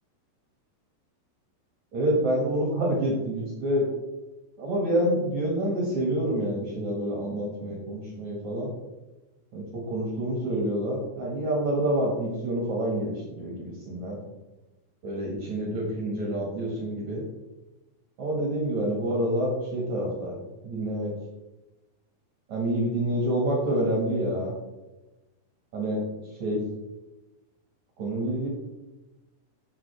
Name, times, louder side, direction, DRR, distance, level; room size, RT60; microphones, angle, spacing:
voice 1, 1.9-3.9 4.6-8.7 9.5-14.2 15.0-17.2 18.2-21.1 22.5-24.5 25.7-26.0 26.4-26.6 28.0-28.5, right 1 dB, 60° right, -2 dB, 2.0 m, -27 dB
11.5 x 7.7 x 3.4 m, 1.1 s
omnidirectional pair, 5.9 m